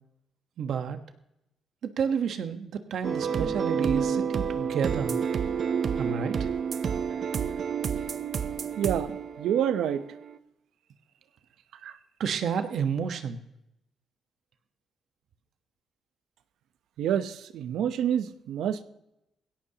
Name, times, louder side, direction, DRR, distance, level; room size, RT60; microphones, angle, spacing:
voice 1, 0.6-1.0 2.0-5.2 6.0-6.5 12.2-13.4, right 7 dB, 70° right, 7 dB, 1.3 m, -30 dB
sound 1, 3.0-10.4, right 7 dB, 55° right, 0.7 m, -29 dB
voice 2, 8.8-9.1 9.4-10.0 11.8-11.9 17.0-18.8, right 9 dB, 85° right, 11 dB, 0.8 m, -27 dB
20.0 x 16.5 x 3.0 m, 0.87 s
cardioid pair, 110°, 0 cm